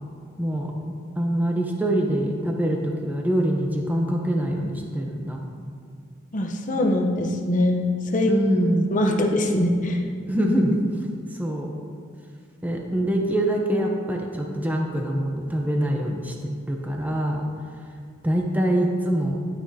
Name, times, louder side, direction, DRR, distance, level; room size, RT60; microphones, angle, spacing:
voice 1, 0.4-0.8 1.2-5.4 8.3-8.9 10.3-10.8 11.4-11.7 12.6-16.3 16.7-17.4 18.2-19.4, right 1 dB, 10° right, 0 dB, 0.8 m, -24 dB
voice 2, 6.3-8.3 8.9-10.0, left 1 dB, 40° left, 2 dB, 0.8 m, -23 dB
11.5 x 9.2 x 2.8 m, 2.2 s
head